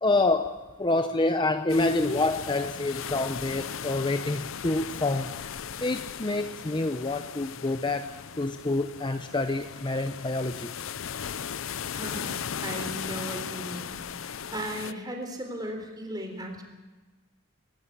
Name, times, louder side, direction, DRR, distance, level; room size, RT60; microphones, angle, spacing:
voice 1, 0.0-5.3 5.8-8.1 8.4-10.7, left 2 dB, 20° left, 8 dB, 0.7 m, -27 dB
sound 1, 1.7-14.9, left 7 dB, 65° left, 0.6 m, -37 dB
voice 2, 11.9-16.6, right 1 dB, 20° right, 4 dB, 3.8 m, -37 dB
23.0 x 13.0 x 9.9 m, 1.2 s
head